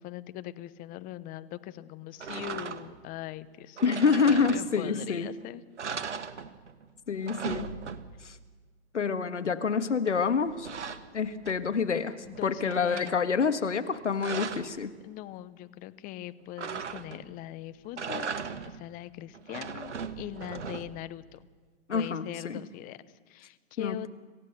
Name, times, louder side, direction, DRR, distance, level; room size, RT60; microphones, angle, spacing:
voice 1, 0.0-3.8 4.3-5.6 11.7-13.3 15.0-21.5 21.9-24.1, left 14 dB, 25° left, 14 dB, 0.8 m, -41 dB
sound 1, 2.2-3.1 3.8-5.0 5.4-5.5 5.8-6.8 7.1-8.4 10.1-11.8 12.2-13.2 13.8-14.8 16.6-17.4 17.8-18.9 19.3-21.1, right 6 dB, 80° right, 1.3 m, -38 dB
voice 2, 3.8-5.3 7.1-7.8 8.2-8.4 8.9-10.7 11.1-14.9 21.9-22.6 23.8-24.1, left 5 dB, 90° left, 11 dB, 1.6 m, -27 dB
27.0 x 15.5 x 6.7 m, 1.5 s
hypercardioid pair, 125°, 35 cm